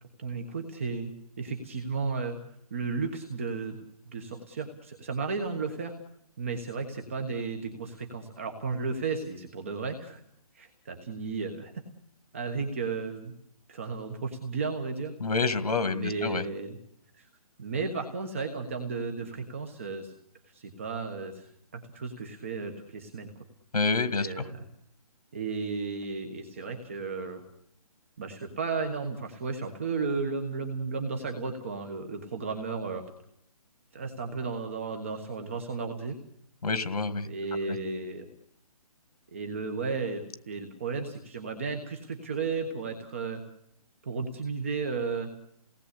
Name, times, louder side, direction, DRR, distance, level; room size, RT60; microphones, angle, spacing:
voice 1, 0.2-1.1 1.4-2.4 2.7-3.8 4.0-5.9 6.4-10.2 10.5-11.7 12.3-13.3 13.7-15.1 15.8-16.8 17.2-17.3 17.6-20.1 20.5-23.3 24.2-24.6 25.3-27.4 28.2-33.0 33.9-36.2 37.3-38.2 39.3-43.4 44.0-45.3, right 4 dB, 20° right, 5 dB, 1.3 m, -34 dB
voice 2, 15.2-16.4 23.7-24.3 36.6-37.3 37.7-37.8, left 4 dB, 80° left, 11 dB, 2.0 m, -27 dB
29.0 x 18.5 x 8.4 m, 0.77 s
hypercardioid pair, 180°, 20 cm